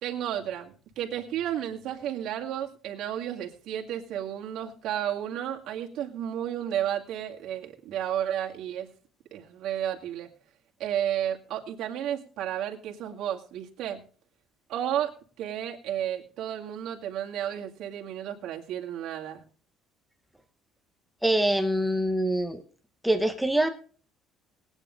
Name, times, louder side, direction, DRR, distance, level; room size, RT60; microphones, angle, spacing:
voice 1, 0.0-8.9 9.3-10.3 10.8-14.0 14.7-15.1 15.4-19.4, right 10 dB, 65° right, 0 dB, 2.1 m, -32 dB
voice 2, 21.2-22.6 23.0-23.7, right 1 dB, ahead, 6 dB, 1.0 m, -24 dB
19.5 x 9.1 x 3.9 m, 0.42 s
cardioid pair, 155°, 0 cm